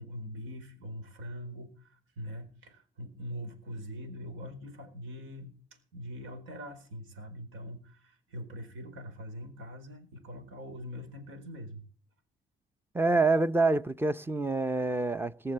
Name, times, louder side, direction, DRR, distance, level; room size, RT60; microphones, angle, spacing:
voice 1, 0.0-5.5 5.9-11.8, equal, 90° right, 4.3 m, -43 dB
voice 2, 12.9-15.5, right 3 dB, 10° right, 0.6 m, -27 dB
20.0 x 6.8 x 7.8 m
cardioid pair, 90°, 20 cm